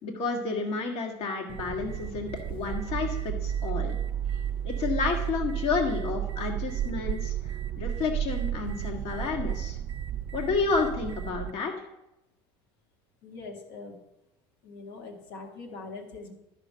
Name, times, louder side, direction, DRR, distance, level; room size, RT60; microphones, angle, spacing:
voice 1, 0.0-4.0 4.6-9.8 10.3-11.7, left 4 dB, 60° left, 2 dB, 1.7 m, -30 dB
sound 1, 1.5-11.5, right 10 dB, 50° right, 0.5 m, -32 dB
voice 2, 13.2-14.0 14.6-16.3, left 3 dB, 90° left, 1 dB, 1.7 m, -42 dB
13.0 x 5.1 x 5.6 m, 0.94 s
supercardioid pair, 115°, 11 cm